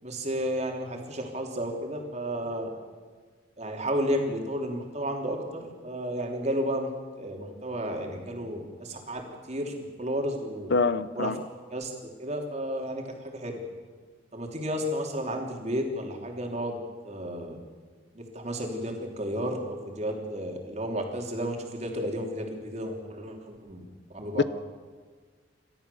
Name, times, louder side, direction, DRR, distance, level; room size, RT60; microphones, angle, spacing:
voice 1, 0.0-2.7 3.6-6.9 7.2-9.2 9.5-10.7 11.1-11.3 11.7-11.9 12.2-13.6 14.3-16.8 17.0-17.6 18.1-23.8 24.1-24.4, equal, 35° right, 2 dB, 3.1 m, -32 dB
voice 2, 10.7-11.4 24.3-24.4, left 4 dB, 60° left, 15 dB, 0.6 m, -25 dB
28.5 x 13.0 x 7.0 m, 1.5 s
head